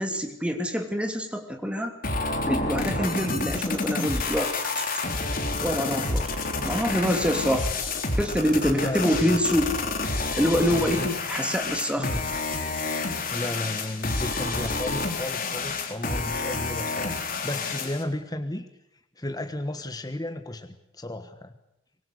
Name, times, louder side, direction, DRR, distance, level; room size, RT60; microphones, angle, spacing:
voice 1, 0.0-1.9 2.4-5.0 5.6-6.4 6.6-9.7 10.4-12.2, equal, 5° right, 5 dB, 2.9 m, -26 dB
sound 1, 2.0-18.0, left 3 dB, 45° left, 3.6 m, -29 dB
voice 2, 8.7-9.5 10.7-11.1 12.0-12.2 13.3-18.7 19.2-21.5, left 1 dB, 20° left, 8 dB, 1.3 m, -33 dB
24.5 x 21.5 x 8.4 m, 0.85 s
head